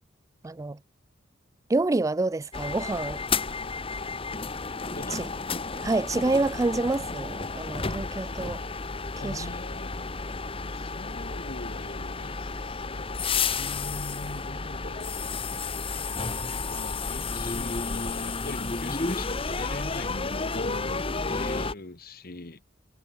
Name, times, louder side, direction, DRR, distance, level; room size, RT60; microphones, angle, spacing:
voice 1, 0.4-0.8 1.7-3.2 5.1-5.3 5.8-8.6 9.2-9.5, right 2 dB, 15° right, 0.3 m, -27 dB
sound 1, 2.5-21.7, left 4 dB, 30° left, 1.3 m, -32 dB
voice 2, 4.9-5.3 9.2-15.2 16.7-22.6, left 2 dB, 50° left, 1.7 m, -41 dB
head